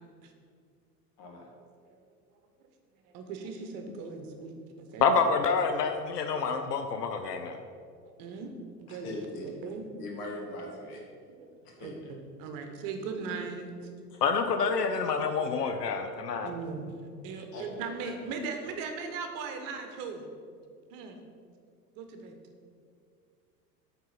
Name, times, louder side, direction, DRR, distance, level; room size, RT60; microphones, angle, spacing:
voice 1, 3.1-5.1 8.2-8.5 8.8-9.1 9.4-9.9 11.3-11.5 11.8-13.7 16.4-20.3 20.9-21.2 22.0-22.3, right 4 dB, 45° right, 5 dB, 1.1 m, -39 dB
voice 2, 5.0-7.6 14.2-16.5, left 5 dB, 75° left, 7 dB, 0.7 m, -27 dB
voice 3, 8.9-9.5 10.0-11.0 11.6-12.0 14.1-14.2 17.5-17.7, left 1 dB, 55° left, 0 dB, 2.0 m, -40 dB
8.7 x 3.9 x 5.6 m, 2.2 s
figure-of-eight pair, 80°, 48 cm